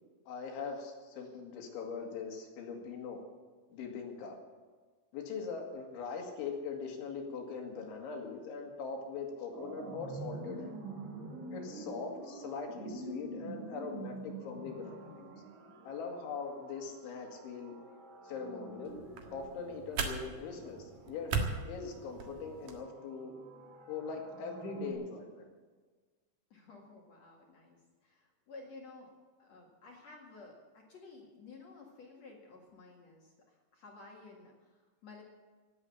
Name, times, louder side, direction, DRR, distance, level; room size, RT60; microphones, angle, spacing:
voice 1, 0.3-3.2 3.7-4.4 5.1-10.8 11.5-15.3 15.8-17.7 18.2-19.0 19.3-21.3 21.7-23.3 23.9-25.5, left 5 dB, 90° left, 1 dB, 4.7 m, -41 dB
sound 1, 9.5-24.9, right 3 dB, 75° right, 4.6 m, -47 dB
sound 2, 18.8-22.8, right 5 dB, 60° right, 2.6 m, -39 dB
voice 2, 26.5-29.1 29.4-35.2, left 3 dB, 50° left, -1 dB, 2.4 m, -54 dB
17.5 x 8.1 x 8.5 m, 1.4 s
omnidirectional pair, 5.3 m